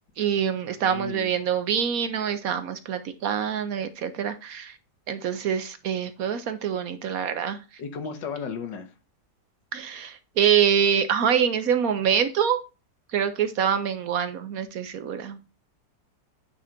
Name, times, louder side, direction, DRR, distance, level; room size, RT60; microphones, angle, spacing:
voice 1, 0.2-4.7 5.1-7.6 9.7-12.6 13.1-15.5, right 8 dB, 65° right, 10 dB, 1.0 m, -25 dB
voice 2, 0.8-1.5 7.8-8.9, left 6 dB, 80° left, 7 dB, 1.8 m, -35 dB
9.2 x 3.9 x 4.3 m, 0.31 s
omnidirectional pair, 1.9 m